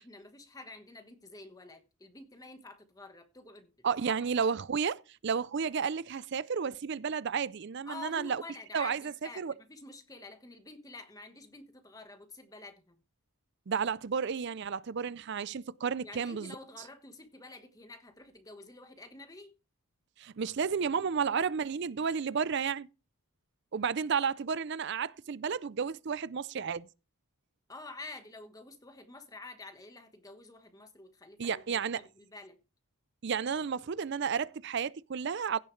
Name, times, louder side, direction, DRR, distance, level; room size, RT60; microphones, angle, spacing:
voice 1, 0.0-4.5 7.9-13.0 16.0-19.5 27.7-32.6, left 2 dB, 15° left, 1.3 m, -49 dB
voice 2, 3.8-8.4 8.7-9.5 13.7-16.5 20.2-22.9 23.7-26.9 31.4-32.1 33.2-35.6, right 6 dB, 50° right, 0.4 m, -32 dB
16.0 x 6.7 x 3.2 m
head